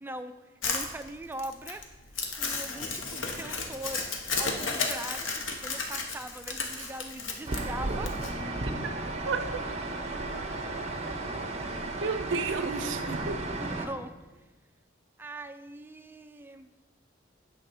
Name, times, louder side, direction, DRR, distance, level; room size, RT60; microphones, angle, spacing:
voice 1, 0.0-1.8 2.4-8.1 13.6-14.1 15.2-16.7, right 1 dB, 10° right, 8 dB, 0.3 m, -41 dB
Crumpling crinkling, 0.6-8.3, left 4 dB, 80° left, 1.0 m, -33 dB
sound 1, 7.5-13.9, right 2 dB, 35° right, 0.7 m, -34 dB
voice 2, 8.6-8.9 9.2-9.6 12.0-13.4, right 4 dB, 70° right, 8 dB, 0.5 m, -32 dB
8.8 x 3.9 x 6.1 m, 1.2 s
head